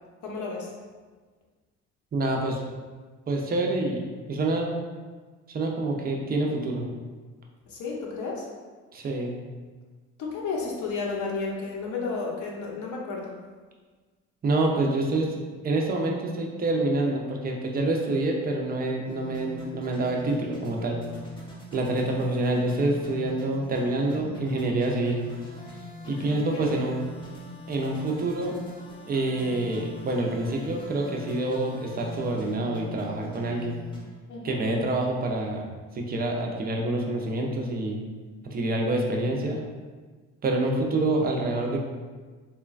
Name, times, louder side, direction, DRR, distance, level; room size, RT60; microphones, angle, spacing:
voice 1, 0.2-0.7 7.7-8.5 10.2-13.3 26.1-26.6 34.3-34.6, left 4 dB, 60° left, -2 dB, 0.7 m, -32 dB
voice 2, 2.1-2.6 3.3-4.7 5.5-6.8 8.9-9.3 14.4-15.4 15.6-21.0 21.7-25.2 26.1-27.0 27.7-28.6 29.1-33.8 34.4-35.6 35.9-38.0 38.5-39.6 40.4-41.8, right 2 dB, 25° right, 0 dB, 0.5 m, -27 dB
sound 1, 19.0-34.0, equal, 15° left, 0.7 m, -43 dB
3.0 x 2.2 x 2.4 m, 1.4 s
supercardioid pair, 70°, 34 cm